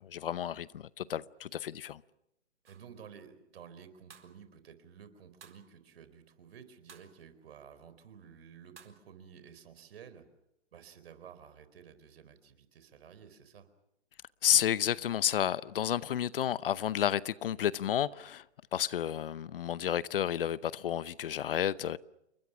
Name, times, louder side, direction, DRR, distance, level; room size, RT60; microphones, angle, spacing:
voice 1, 0.0-2.0 14.4-18.4 18.7-22.0, left 10 dB, 50° left, 0.8 m, -31 dB
voice 2, 2.6-10.3 10.7-13.7, right 7 dB, 55° right, 4.3 m, -53 dB
sound 1, 2.6-2.9 4.1-4.4 5.4-5.7 6.9-7.2 8.8-9.0, right 6 dB, 75° right, 4.3 m, -56 dB
29.5 x 23.0 x 6.1 m
hypercardioid pair, 145°, 36 cm